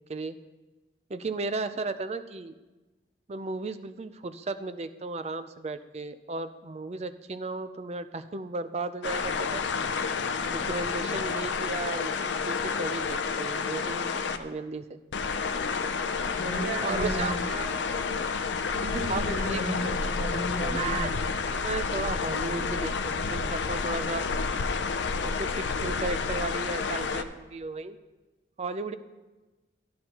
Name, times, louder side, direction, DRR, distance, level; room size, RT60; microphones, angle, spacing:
voice 1, 1.1-2.5 3.3-9.6 10.5-14.1 14.4-15.0 16.8-17.3 19.1-19.6 20.6-21.1 21.6-22.9 23.3-24.2 25.2-28.0 28.6-28.9, right 3 dB, 35° right, 11 dB, 0.4 m, -34 dB
sound 1, 9.0-14.4 15.1-27.2, left 5 dB, 75° left, 0.5 m, -30 dB
voice 2, 16.3-18.0 18.7-21.1, right 1 dB, 70° right, 0 dB, 1.7 m, -33 dB
13.0 x 9.3 x 2.9 m, 1.2 s
head